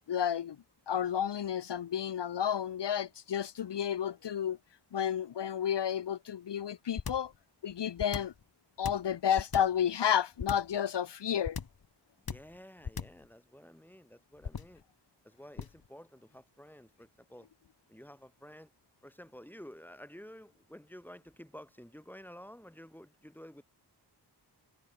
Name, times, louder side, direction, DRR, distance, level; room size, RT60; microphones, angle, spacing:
voice 1, 0.1-0.6 0.9-4.6 4.9-7.3 7.6-8.3 8.8-11.6, left 9 dB, 80° left, 0.8 m, -31 dB
sound 1, 7.0-7.3 8.0-8.4 8.8-9.8 10.4-10.8 11.4-11.8 12.3-12.6 12.8-13.3 14.4-14.8 15.6-15.9, left 6 dB, 60° left, 1.7 m, -38 dB
voice 2, 12.2-14.8 15.2-17.5 17.9-18.7 19.0-23.6, equal, 5° left, 7.1 m, -51 dB
wide cardioid pair, 110°, 41 cm